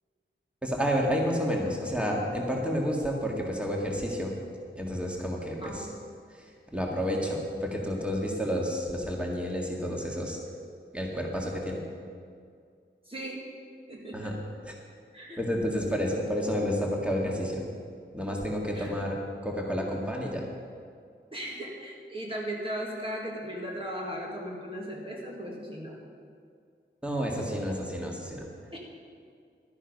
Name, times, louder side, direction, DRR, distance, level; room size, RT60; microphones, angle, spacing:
voice 1, 0.6-4.4 4.7-5.9 6.3-6.4 6.7-10.4 10.9-11.8 14.1-14.4 14.7-14.8 15.4-17.6 18.1-20.5 27.0-28.5, equal, 5° right, -1 dB, 1.9 m, -30 dB
voice 2, 5.6-5.9 13.1-13.4 13.9-14.3 15.1-15.4 18.7-18.9 21.3-26.1 28.7-28.8, equal, 25° right, -3 dB, 1.7 m, -37 dB
12.0 x 9.9 x 5.4 m, 2.2 s
wide cardioid pair, 85°, 20 cm